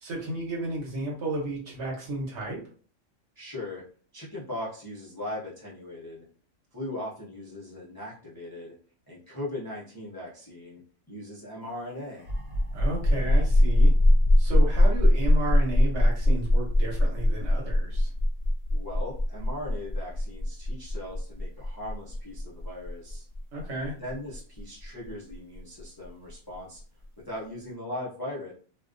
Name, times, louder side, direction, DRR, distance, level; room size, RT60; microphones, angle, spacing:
voice 1, 0.0-2.6 12.7-13.9 14.4-18.1 23.5-23.9, right 2 dB, 60° right, -2 dB, 1.0 m, -33 dB
voice 2, 3.4-3.8 4.1-6.3 6.7-8.7 9.1-10.8 11.1-12.3 18.7-23.2 24.0-26.8 27.3-28.5, left 1 dB, 30° left, -7 dB, 0.4 m, -39 dB
sound 1, 12.2-25.6, left 1 dB, 90° right, 1.1 m, -22 dB
2.3 x 2.2 x 2.4 m, 0.42 s
omnidirectional pair, 1.4 m